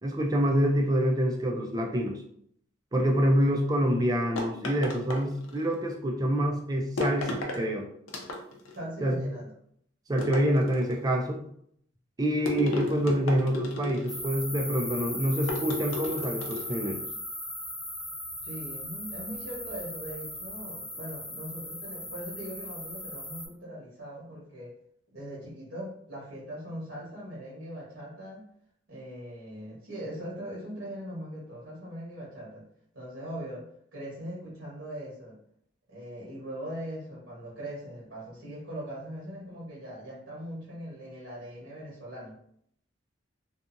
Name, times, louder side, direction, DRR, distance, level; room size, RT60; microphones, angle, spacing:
voice 1, 0.0-2.2 2.9-7.9 9.0-9.3 10.1-11.4 12.2-17.0, equal, 20° right, 2 dB, 0.4 m, -26 dB
sound 1, 4.4-5.7 7.0-7.6 8.1-8.8 10.2-11.1 12.5-14.2 15.5-16.8, left 2 dB, 85° left, 0.6 m, -34 dB
voice 2, 8.7-9.5 18.4-24.7 25.1-28.5 28.9-32.6 32.9-33.6 33.9-35.4 35.9-42.3, equal, 70° right, -5 dB, 1.2 m, -40 dB
sound 2, 14.1-23.5, left 1 dB, 5° left, 0.7 m, -38 dB
2.7 x 2.4 x 2.5 m, 0.67 s
head